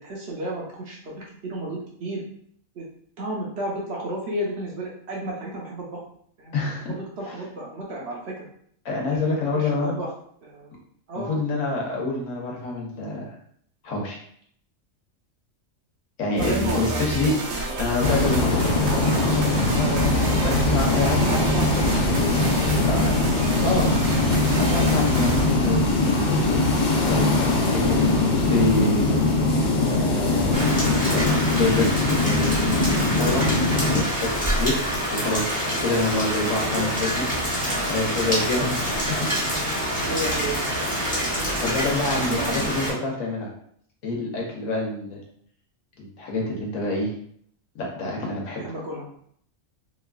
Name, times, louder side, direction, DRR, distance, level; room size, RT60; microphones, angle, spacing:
voice 1, 0.0-2.2 2.8-2.9 3.2-6.0 6.4-6.5 6.9-8.5 9.1-10.1 10.4-10.7 11.1-11.4 16.4-17.9 19.7-20.1 20.9-22.3 22.7-22.9 36.6-36.9 38.3-38.7 39.0-39.2 40.0-40.6 42.1-42.8 48.6-49.1, right 1 dB, 60° right, -3 dB, 0.8 m, -32 dB
voice 2, 6.5-6.9 7.3-7.4 8.8-10.0 11.1-13.3 13.8-14.2 16.2-17.4 17.8-18.6 20.4-21.2 22.9-23.1 23.6-24.0 24.6-26.5 27.1-27.4 27.6-29.2 29.9-30.8 31.1-32.5 33.1-33.6 33.9-37.6 37.9-39.3 41.6-43.5 44.0-45.2 46.0-47.1 47.7-48.6, left 2 dB, 80° left, -2 dB, 1.2 m, -27 dB
sound 1, 16.4-25.4, right 2 dB, 85° right, 1.0 m, -29 dB
sound 2, 18.0-34.0, left 2 dB, 55° left, 0.6 m, -21 dB
Rain, 30.5-42.9, equal, 5° left, 0.8 m, -26 dB
2.9 x 2.3 x 2.3 m, 0.64 s
omnidirectional pair, 1.4 m